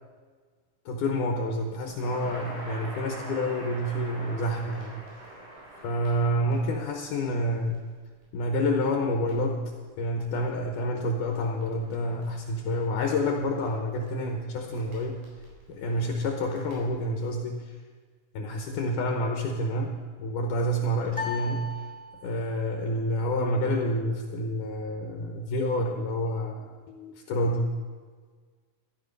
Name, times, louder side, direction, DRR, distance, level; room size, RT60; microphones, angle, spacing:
voice 1, 0.9-5.1 5.8-7.8 8.3-9.6 10.0-15.2 15.7-17.7 18.3-21.6 22.2-27.7, left 1 dB, 75° left, 2 dB, 2.4 m, -28 dB
Crackle, 1.8-17.3, right 1 dB, 80° right, 5.6 m, -47 dB
sound 1, 21.1-22.6, left 3 dB, 5° left, 1.8 m, -36 dB
12.5 x 12.5 x 5.3 m, 1.5 s
omnidirectional pair, 3.9 m